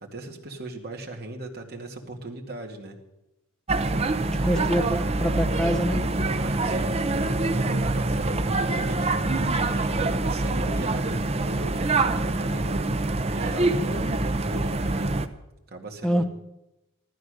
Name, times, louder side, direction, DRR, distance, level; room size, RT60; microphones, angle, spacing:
voice 1, 0.0-2.9 4.5-4.7 6.1-9.1 9.7-12.9 13.3-15.1 15.7-16.2, right 2 dB, 50° right, 1 dB, 2.2 m, -38 dB
sound 1, 3.7-15.3, right 2 dB, 30° right, 0.7 m, -25 dB
voice 2, 4.3-6.0 16.0-16.2, equal, 5° left, 5 dB, 1.1 m, -25 dB
15.0 x 12.5 x 6.5 m, 0.92 s
head